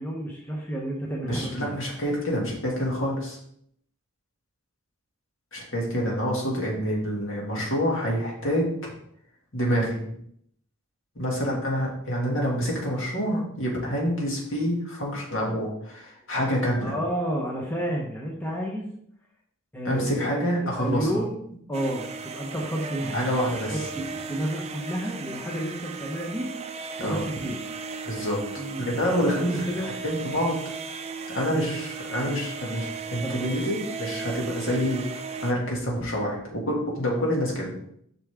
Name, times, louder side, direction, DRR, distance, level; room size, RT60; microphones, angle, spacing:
voice 1, 0.0-1.7 16.8-18.9 19.7-20.4 20.7-21.4 21.7-23.2 23.7-26.5 27.0-27.6 28.6-28.9 29.3-29.9 33.2-33.6, equal, 10° left, -2 dB, 0.9 m, -31 dB
voice 2, 1.2-3.4 5.5-8.9 9.5-10.0 11.2-16.9 19.8-21.1 23.1-23.8 27.0-27.2 28.0-28.4 28.9-29.7 30.0-30.6 31.3-35.0 35.4-37.7, equal, 60° left, -3 dB, 2.4 m, -27 dB
sound 1, 21.7-35.5, right 5 dB, 30° right, 0.5 m, -36 dB
6.9 x 5.9 x 3.6 m, 0.70 s
head